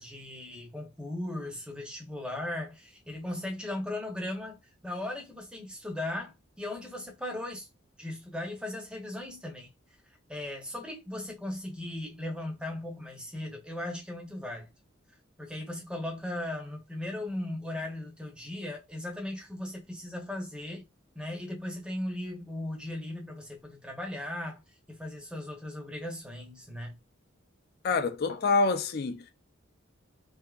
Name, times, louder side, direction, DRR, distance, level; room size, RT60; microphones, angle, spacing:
voice 1, 0.0-4.6 4.8-7.7 8.0-9.7 10.3-14.7 15.4-20.8 21.1-24.6 24.9-27.0, left 1 dB, 5° right, 0.7 m, -37 dB
voice 2, 27.8-29.3, left 3 dB, 50° left, 0.4 m, -26 dB
3.4 x 2.7 x 2.3 m
head